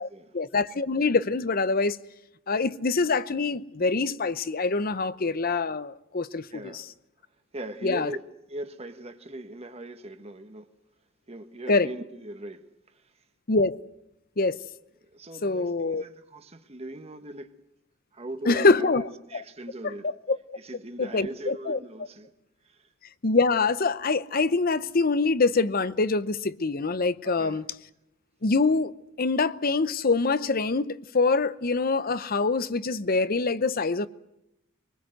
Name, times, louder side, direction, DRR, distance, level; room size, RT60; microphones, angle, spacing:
voice 1, 0.3-2.0 2.5-6.8 7.8-8.1 11.7-11.9 13.5-13.8 14.4-14.6 15.4-16.0 18.5-19.1 19.8-20.4 21.0-21.8 23.2-27.6 28.4-28.9 29.2-34.1, left 3 dB, 45° left, 0.8 m, -25 dB
voice 2, 6.5-6.8 7.5-10.7 11.3-12.6 15.1-17.5 18.1-20.1 20.6-22.3 22.7-22.8 27.2-27.6, right 1 dB, 30° right, 1.3 m, -39 dB
23.5 x 20.5 x 7.8 m
head